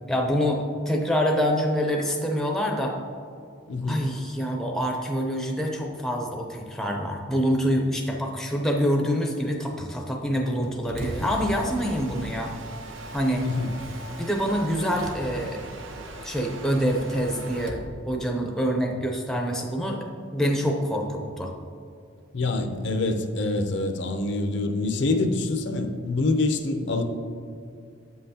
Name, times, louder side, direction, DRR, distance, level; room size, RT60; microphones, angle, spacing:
voice 1, 0.1-2.9 3.8-12.5 13.1-13.4 14.2-15.6 16.2-20.1 20.3-21.5, equal, ahead, 1 dB, 0.5 m, -26 dB
voice 2, 3.7-4.0 11.2-11.3 13.4-13.7 22.3-27.0, left 2 dB, 60° left, 6 dB, 0.5 m, -26 dB
Mechanisms, 10.6-17.9, right 1 dB, 75° right, 0.7 m, -38 dB
7.7 x 5.5 x 2.8 m, 2.4 s
head